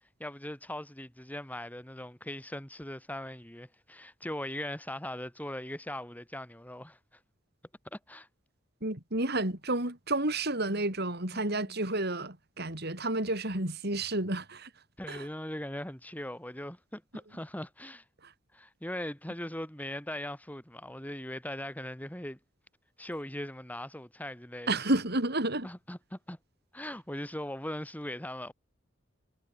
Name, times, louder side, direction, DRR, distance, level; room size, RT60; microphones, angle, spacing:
voice 1, 0.2-7.0 7.9-8.3 10.7-10.8 11.3-11.8 15.0-18.0 18.5-22.4 23.0-24.9 25.6-26.4 26.7-28.5, left 1 dB, 10° left, 3.9 m, -40 dB
voice 2, 8.8-14.7 15.1-15.3 18.2-18.3 24.7-25.7, right 2 dB, 55° right, 6.1 m, -31 dB
head